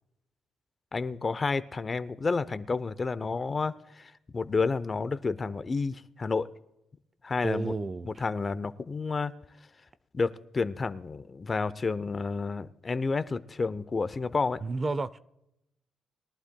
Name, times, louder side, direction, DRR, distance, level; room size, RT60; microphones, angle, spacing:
voice 1, 0.9-6.5 7.2-7.7 8.0-9.3 10.1-14.6, left 4 dB, 30° left, 0.6 m, -30 dB
voice 2, 7.4-8.1 14.6-15.2, right 3 dB, 30° right, 0.5 m, -31 dB
21.5 x 11.5 x 2.3 m
cardioid pair, 90°, 0 cm